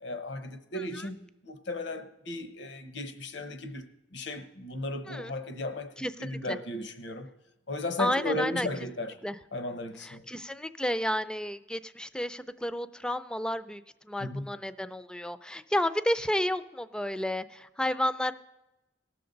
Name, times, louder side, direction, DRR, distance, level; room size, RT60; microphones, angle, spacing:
voice 1, 0.0-5.9 6.2-7.3 7.7-9.2 9.5-10.2 14.2-14.5, left 2 dB, 75° left, 0.9 m, -35 dB
voice 2, 0.7-1.1 5.1-5.3 6.0-6.6 8.0-8.7 9.2-9.4 10.0-18.3, left 1 dB, 5° left, 0.4 m, -31 dB
18.5 x 6.8 x 3.9 m
head